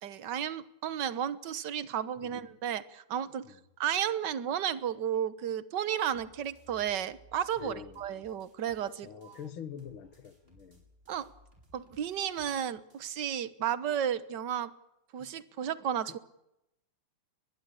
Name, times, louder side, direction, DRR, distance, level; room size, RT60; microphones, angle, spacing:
voice 1, 0.0-3.5 3.8-9.4 11.1-11.3 11.7-14.7 15.1-16.2, right 9 dB, 60° right, 1.7 m, -33 dB
voice 2, 2.2-2.5 3.4-3.6 7.6-8.0 9.0-10.9 15.2-15.3 16.0-16.2, left 8 dB, 70° left, 2.6 m, -45 dB
sound 1, 6.1-9.5 9.8-13.2, right 1 dB, 25° right, 6.4 m, -61 dB
23.0 x 21.0 x 8.5 m
omnidirectional pair, 2.3 m